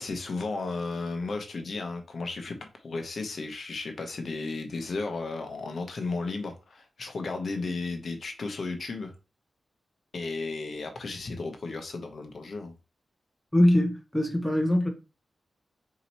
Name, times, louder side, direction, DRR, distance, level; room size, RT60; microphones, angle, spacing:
voice 1, 0.0-2.6 2.8-9.1 10.1-12.7, left 3 dB, 55° left, 0.8 m, -34 dB
voice 2, 13.5-14.9, left 1 dB, 5° left, 0.7 m, -22 dB
4.0 x 2.9 x 4.3 m
wide cardioid pair, 150°, 0 cm